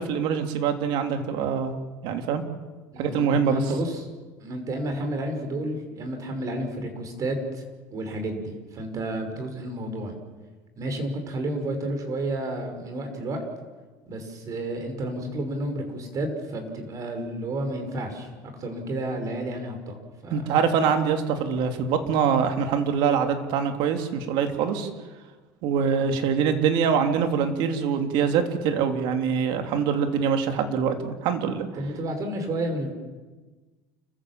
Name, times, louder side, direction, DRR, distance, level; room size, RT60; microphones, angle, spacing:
voice 1, 0.0-1.7 2.0-2.4 3.0-3.6 20.3-24.9 25.6-31.7, right 7 dB, 70° right, 6 dB, 3.0 m, -24 dB
voice 2, 2.9-4.1 4.4-7.6 7.9-10.1 10.8-13.4 14.1-19.9 20.2-20.5 26.0-26.2 31.8-32.9, right 1 dB, 40° right, 5 dB, 5.9 m, -31 dB
30.0 x 15.0 x 7.6 m, 1.3 s
supercardioid pair, 105°, 8 cm